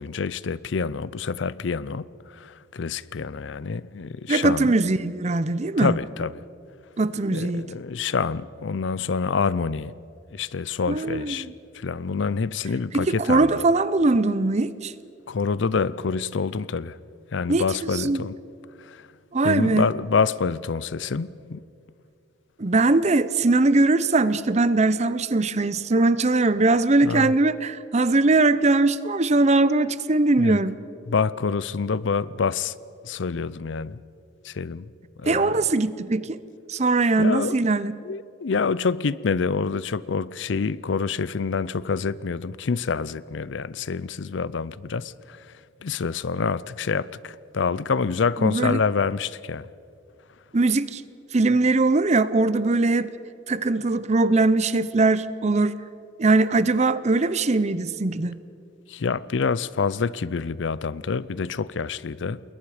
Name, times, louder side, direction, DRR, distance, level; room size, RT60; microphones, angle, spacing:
voice 1, 0.0-4.7 5.8-6.4 7.3-9.9 10.3-11.5 11.7-13.6 15.3-17.0 17.3-18.4 18.8-19.0 19.4-21.6 27.0-27.3 30.4-30.6 31.1-32.8 33.0-34.0 34.4-34.9 35.2-35.6 37.2-37.6 38.0-45.6 45.8-49.7 58.9-62.4, left 5 dB, 65° left, 0.5 m, -27 dB
voice 2, 4.3-6.0 7.0-7.7 10.9-11.5 12.9-14.9 17.5-18.2 19.3-19.8 22.6-30.8 35.2-36.4 36.7-37.9 48.4-48.8 50.5-51.0 51.3-53.1 53.5-55.8 56.2-58.4, right 2 dB, 35° right, 0.6 m, -21 dB
28.5 x 21.5 x 5.0 m
head